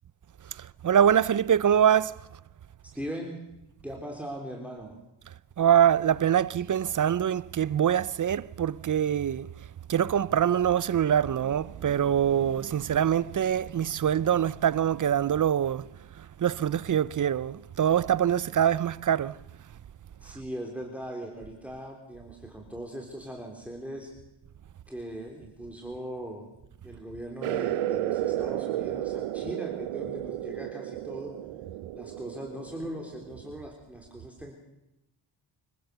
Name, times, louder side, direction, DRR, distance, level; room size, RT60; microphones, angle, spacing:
voice 1, 0.5-2.2 5.6-9.5 9.9-15.9 16.2-19.4, right 9 dB, 40° right, 0.6 m, -24 dB
voice 2, 2.9-3.4 3.8-5.0 20.2-24.1 24.9-26.5 26.8-31.3 31.9-34.5, equal, 5° right, 3.7 m, -39 dB
sound 1, 27.4-33.6, right 13 dB, 85° right, 0.8 m, -33 dB
25.5 x 15.0 x 6.9 m
cardioid pair, 75°, 50 cm